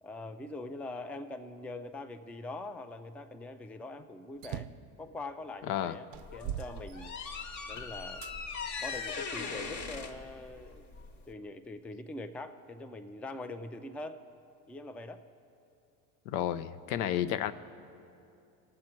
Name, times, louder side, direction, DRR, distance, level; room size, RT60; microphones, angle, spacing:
voice 1, 0.0-4.7 5.0-6.1 6.3-7.2 7.7-8.2 8.8-10.8 11.3-14.2 14.7-15.2, left 2 dB, 5° left, 9 dB, 0.3 m, -43 dB
sound 1, 4.4-4.9 5.6-5.7 6.1-7.5 8.2-8.4 9.1-10.1, right 11 dB, 55° right, 0.5 m, -42 dB
sound 2, 6.1-11.3, left 5 dB, 40° left, 1.1 m, -40 dB
voice 2, 16.3-17.5, left 11 dB, 85° left, 13 dB, 0.6 m, -31 dB
19.0 x 7.6 x 4.5 m, 2.6 s
supercardioid pair, 95°, 44 cm